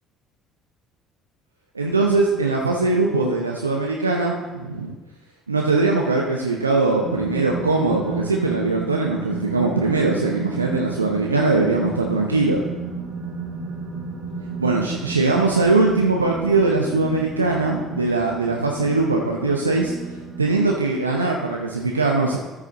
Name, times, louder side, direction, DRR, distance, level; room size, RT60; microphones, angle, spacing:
voice 1, 1.7-4.9 5.5-12.6 14.6-19.9 20.4-22.4, right 3 dB, 85° right, -1 dB, 0.6 m, -21 dB
sound 1, 7.0-20.4, right 4 dB, 65° right, 1.4 m, -32 dB
13.5 x 4.9 x 3.8 m, 1.1 s
figure-of-eight pair, 55°, 0 cm